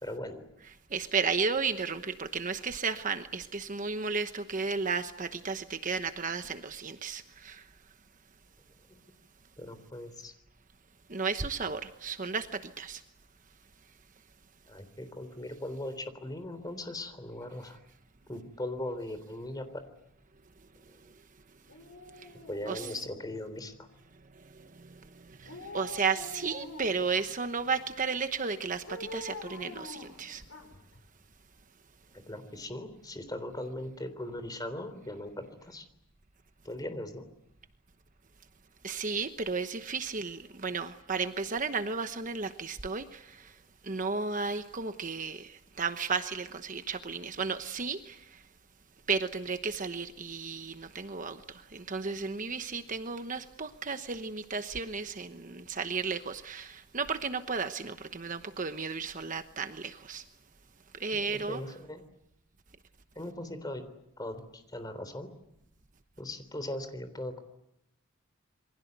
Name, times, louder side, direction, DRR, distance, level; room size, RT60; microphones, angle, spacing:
voice 1, 0.0-0.4 9.6-10.3 14.7-17.8 18.3-19.9 22.5-23.9 32.3-35.8 36.6-37.2 61.1-62.0 63.1-63.8 64.2-65.3 66.2-67.4, left 1 dB, 20° left, 3.5 m, -39 dB
voice 2, 0.6-7.7 11.1-13.0 21.1-21.2 22.1-22.4 22.6-23.0 24.1-30.4 38.8-48.5 49.1-60.3 60.9-61.8, right 5 dB, 40° right, 1.1 m, -34 dB
Dog, 21.7-23.7 25.4-27.1 28.9-31.0 31.3-31.4, left 2 dB, 80° left, 5.9 m, -45 dB
28.0 x 24.0 x 8.1 m
head